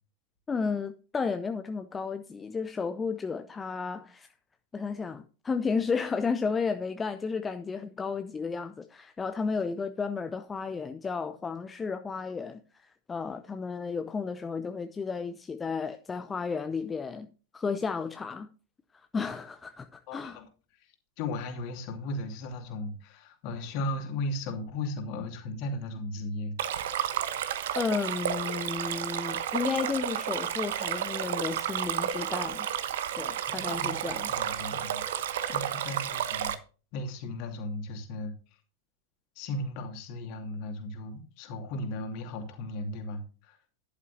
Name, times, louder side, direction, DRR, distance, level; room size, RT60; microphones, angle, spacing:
voice 1, 0.5-4.3 4.7-18.5 18.9-20.4 27.7-32.7 33.2-34.3, left 5 dB, 15° left, 0.6 m, -33 dB
voice 2, 20.1-20.5 21.2-26.9 33.5-36.5 36.9-38.3 39.4-43.6, left 2 dB, 45° left, 2.5 m, -36 dB
Stream, 26.6-36.5, right 10 dB, 60° right, 1.0 m, -31 dB
12.5 x 11.0 x 2.7 m
figure-of-eight pair, 90°, 0 cm